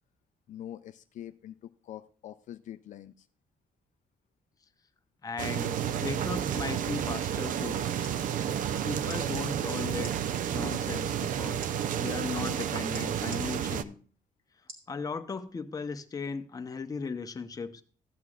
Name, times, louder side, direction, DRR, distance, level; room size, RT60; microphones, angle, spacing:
voice 1, 0.5-3.3, left 11 dB, 65° left, 9 dB, 0.4 m, -44 dB
voice 2, 5.2-8.2 8.8-10.1 10.5-11.6 11.9-13.9 14.9-17.8, left 5 dB, 25° left, 7 dB, 0.7 m, -37 dB
sound 1, 5.4-13.8, right 9 dB, 70° right, 0.5 m, -31 dB
sound 2, 9.1-9.2 10.0-10.2 11.6-11.7 12.9-13.4 14.7-14.9 15.5-15.6, right 2 dB, 45° right, 2.7 m, -45 dB
14.5 x 8.0 x 2.4 m, 0.43 s
cardioid pair, 125°, 14 cm